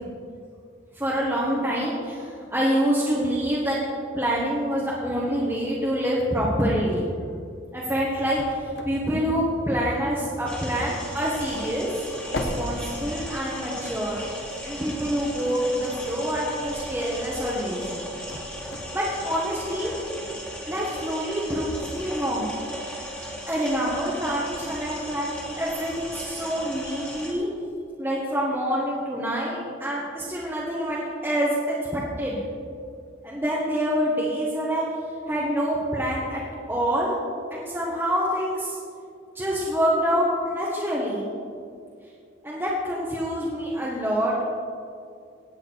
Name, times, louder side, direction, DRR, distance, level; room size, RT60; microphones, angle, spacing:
voice 1, 0.9-3.8 4.1-7.0 7.7-11.9 12.3-14.2 14.6-18.0 18.9-19.9 20.7-22.5 23.5-27.5 28.0-31.5 31.9-32.4 33.2-34.8 35.3-36.4 36.7-37.1 37.5-38.8 39.3-41.3 42.4-44.3, equal, 10° right, -6 dB, 1.5 m, -26 dB
sound 1, 7.8-19.8, left 1 dB, 60° left, 1.4 m, -40 dB
sound 2, 10.5-27.3, equal, 5° left, 2.2 m, -36 dB
18.5 x 8.4 x 4.7 m, 2.3 s
head